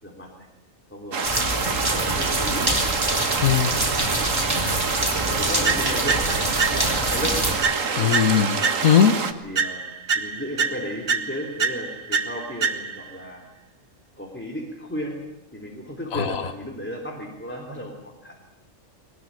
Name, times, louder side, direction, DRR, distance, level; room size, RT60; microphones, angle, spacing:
voice 1, 0.0-0.5 0.9-1.5 1.9-3.8 4.2-4.7 5.3-7.5 7.8-8.3 8.6-8.9 9.4-9.8 10.1-13.4 14.2-15.2 15.5-18.4, equal, 10° left, 0 dB, 3.3 m, -35 dB
sound 1, 1.1-9.3, right 5 dB, 70° right, 1.8 m, -27 dB
sound 2, 1.2-7.5, right 1 dB, 15° right, 4.9 m, -26 dB
voice 2, 3.4-4.1 8.0-9.1 16.1-16.4, left 8 dB, 85° left, 10 dB, 1.6 m, -20 dB
sound 3, 5.6-7.1 7.6-9.2 9.6-13.2, right 5 dB, 40° right, 1.1 m, -27 dB
20.5 x 20.5 x 9.7 m, 0.91 s
omnidirectional pair, 1.4 m